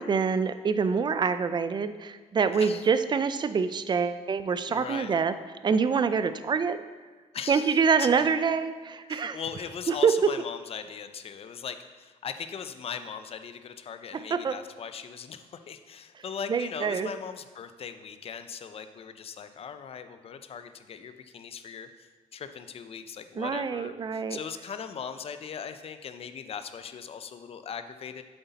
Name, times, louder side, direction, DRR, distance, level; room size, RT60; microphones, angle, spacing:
voice 1, 0.0-5.3 5.6-6.8 7.5-9.4 10.0-10.1 14.3-14.6 16.5-17.1 23.4-24.4, right 5 dB, 35° right, 12 dB, 0.5 m, -26 dB
voice 2, 2.5-2.9 4.7-5.2 7.3-8.1 9.0-28.2, left 7 dB, 45° left, 10 dB, 0.6 m, -39 dB
7.9 x 7.7 x 4.1 m, 1.4 s
cardioid pair, 110°, 13 cm